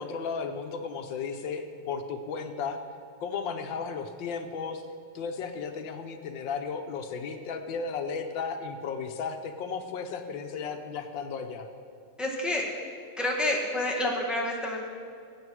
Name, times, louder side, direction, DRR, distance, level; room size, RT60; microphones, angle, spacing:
voice 1, 0.0-2.8 3.2-4.8 5.1-11.7, left 5 dB, 80° left, 6 dB, 1.6 m, -34 dB
voice 2, 12.2-12.7 13.2-14.9, left 1 dB, ahead, -2 dB, 1.4 m, -28 dB
19.5 x 8.6 x 4.8 m, 2.3 s
omnidirectional pair, 2.0 m